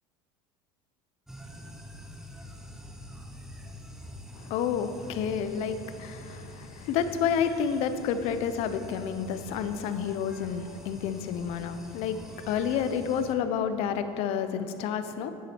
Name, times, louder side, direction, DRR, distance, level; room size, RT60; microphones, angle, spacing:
sound 1, 1.3-13.3, left 1 dB, 5° right, 0.7 m, -45 dB
voice 1, 4.3-15.3, left 7 dB, 60° left, 10 dB, 0.6 m, -30 dB
10.0 x 7.3 x 4.4 m, 2.6 s
cardioid pair, 140°, 12 cm